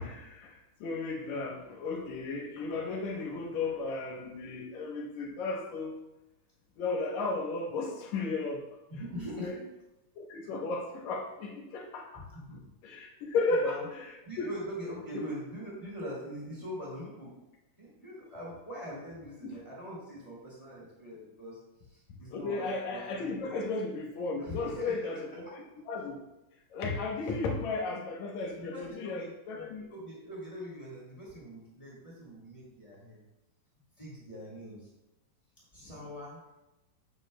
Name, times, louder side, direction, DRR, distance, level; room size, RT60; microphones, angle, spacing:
voice 1, 0.0-6.0 6.8-8.6 9.4-9.6 10.2-12.2 12.8-14.5 15.1-15.2 19.4-19.5 22.3-25.6 25.9-26.3 26.7-29.9, left 3 dB, 70° left, 0 dB, 2.1 m, -34 dB
voice 2, 8.9-9.5 12.3-12.7 13.3-13.9 14.2-17.4 17.8-21.6 21.9-23.5 24.4-25.5 28.5-33.2 34.0-34.9 35.7-36.4, equal, 10° left, -6 dB, 2.6 m, -43 dB
9.2 x 8.4 x 2.2 m, 0.98 s
omnidirectional pair, 3.7 m